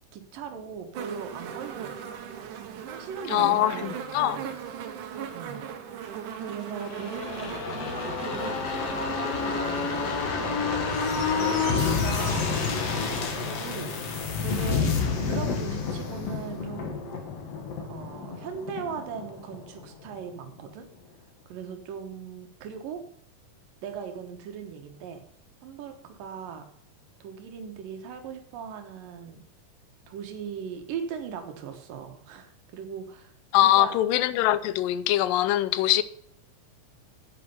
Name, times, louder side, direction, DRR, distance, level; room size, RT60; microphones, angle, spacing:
voice 1, 0.1-2.1 2.5-4.6 5.3-5.7 6.5-12.5 13.1-14.0 14.4-14.9 15.2-17.0 17.8-20.9 21.5-23.0 23.8-25.2 25.6-26.7 27.2-29.4 30.1-34.0, right 7 dB, 85° right, 3.1 m, -39 dB
sound 1, 0.9-12.0 13.0-13.1, right 8 dB, 70° right, 2.6 m, -39 dB
voice 2, 3.3-4.4 33.5-36.0, left 13 dB, 90° left, 2.4 m, -23 dB
chronosphere-ish, 6.7-20.2 20.5-20.6, left 5 dB, 50° left, 2.6 m, -29 dB
9.8 x 9.1 x 5.5 m
omnidirectional pair, 3.8 m